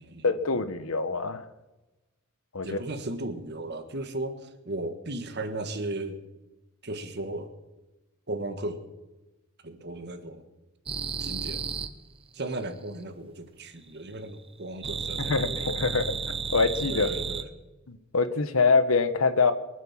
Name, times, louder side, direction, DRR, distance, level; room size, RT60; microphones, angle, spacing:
voice 1, 0.2-1.4 2.5-2.8 15.2-16.2 16.5-17.1 17.9-19.5, left 4 dB, 85° left, 11 dB, 1.1 m, -24 dB
voice 2, 2.6-6.2 6.8-7.5 8.3-8.9 9.6-10.5 11.2-11.7 12.3-15.8 16.9-17.5, right 2 dB, 55° right, 8 dB, 1.6 m, -36 dB
sound 1, 10.9-11.9 14.8-17.4, right 5 dB, 25° right, 0.8 m, -32 dB
23.0 x 7.8 x 7.3 m, 1.1 s
head